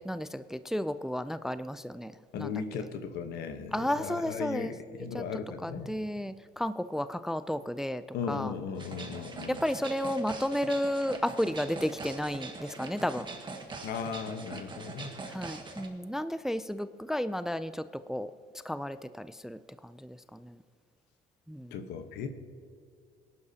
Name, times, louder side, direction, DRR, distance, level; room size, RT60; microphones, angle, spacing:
voice 1, 0.0-2.5 3.7-4.7 5.1-5.2 5.6-8.5 9.5-13.3 15.3-18.3 18.6-20.6 21.5-21.7, equal, 5° right, 13 dB, 0.3 m, -33 dB
voice 2, 2.3-5.9 8.1-9.6 13.8-15.1 21.7-22.3, left 6 dB, 80° left, 8 dB, 1.1 m, -37 dB
sound 1, 8.7-15.9, right 3 dB, 30° right, 1.6 m, -42 dB
21.0 x 11.5 x 2.8 m, 2.3 s
cardioid pair, 110°, 17 cm